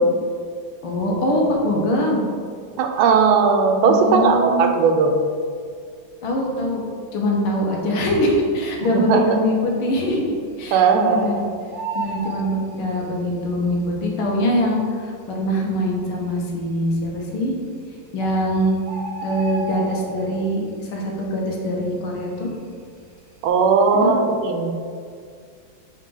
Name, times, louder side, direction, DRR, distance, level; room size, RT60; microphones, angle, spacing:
voice 1, 0.8-2.2 3.9-4.7 6.2-6.8 7.1-11.4 11.9-17.6 18.1-18.8 19.2-22.5 23.9-24.1, left 1 dB, 85° left, -1 dB, 1.9 m, -23 dB
voice 2, 2.8-5.2 8.9-9.2 10.7-11.4 23.4-24.7, right 5 dB, 80° right, 4 dB, 1.5 m, -17 dB
Bird, 8.8-9.4 9.7-9.8 10.1-11.3 11.5-13.4 14.2-14.3 14.9-15.0 15.2-15.4 16.0-16.5 17.4-17.5 17.9-18.0 18.2-20.5 20.8-21.1 21.5-22.8 23.2-23.4, right 4 dB, 60° right, 1.2 m, -32 dB
7.3 x 4.0 x 3.8 m, 2.1 s
omnidirectional pair, 2.3 m